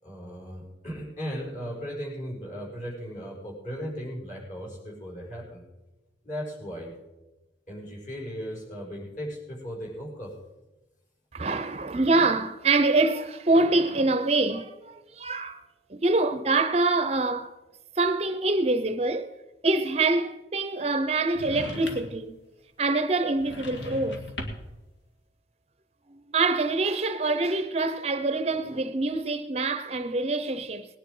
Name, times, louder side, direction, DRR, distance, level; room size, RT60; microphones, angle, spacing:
voice 1, 0.0-5.6 6.2-6.9 7.7-10.4, equal, 45° left, 5.2 m, -37 dB
voice 2, 11.3-15.6 15.9-17.5 18.0-19.3 19.6-22.4 22.8-24.2 26.1-30.9, right 3 dB, 35° right, 0.6 m, -25 dB
sound 1, 21.3-22.3 23.3-24.8, left 1 dB, 75° left, 2.0 m, -38 dB
19.0 x 10.0 x 4.8 m
head